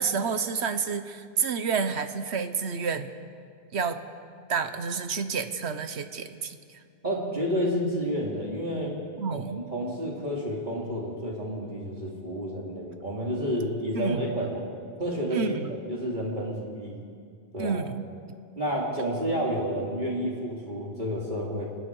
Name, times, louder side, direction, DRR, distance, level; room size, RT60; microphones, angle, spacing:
voice 1, 0.0-3.1 3.7-4.0 4.5-6.8 9.2-9.6 13.9-14.4 15.3-15.7 17.6-18.0, right 5 dB, 90° right, 9 dB, 1.3 m, -29 dB
voice 2, 7.0-8.9 9.3-9.4 9.7-14.6 15.0-17.0 17.5-17.8 18.6-21.7, equal, 45° right, -3 dB, 3.1 m, -30 dB
29.5 x 19.5 x 4.8 m, 2.2 s
omnidirectional pair, 1.1 m